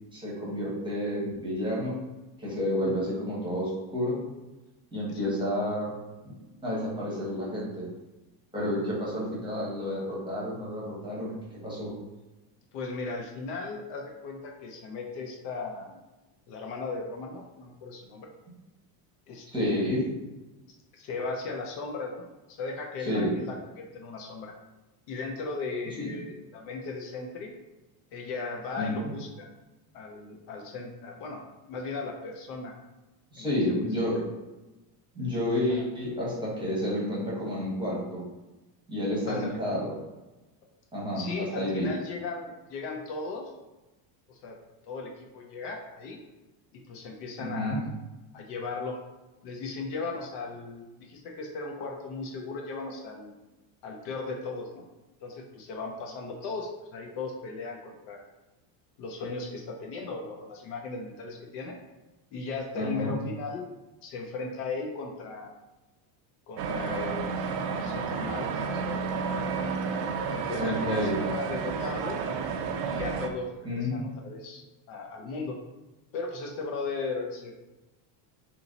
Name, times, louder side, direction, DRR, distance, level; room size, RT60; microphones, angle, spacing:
voice 1, 0.1-2.0 2.4-4.2 4.9-5.9 6.6-7.9 8.5-11.4 11.6-11.9 19.5-20.0 23.1-23.3 26.0-26.1 28.8-29.0 33.3-34.2 35.1-38.2 38.9-39.9 40.9-41.9 47.4-47.8 62.8-63.1 70.6-71.2 73.6-74.0, left 1 dB, 10° right, -6 dB, 0.9 m, -30 dB
voice 2, 12.7-16.0 16.5-18.3 19.3-19.8 20.9-24.5 25.1-27.5 28.1-29.5 29.9-31.4 31.7-32.7 33.4-33.9 35.8-35.9 39.3-39.6 41.1-43.5 44.3-44.6 44.8-46.2 46.9-47.9 48.3-49.0 49.4-53.3 53.8-54.8 55.2-58.2 59.0-61.8 62.3-63.6 64.0-65.5 66.5-67.3 67.7-69.5 70.3-72.2 72.8-74.6 74.9-75.6 76.1-77.5, left 3 dB, 55° left, 1 dB, 0.6 m, -37 dB
sound 1, 66.6-73.3, right 5 dB, 75° right, 0.6 m, -31 dB
2.8 x 2.7 x 3.8 m, 1.1 s
cardioid pair, 155°, 49 cm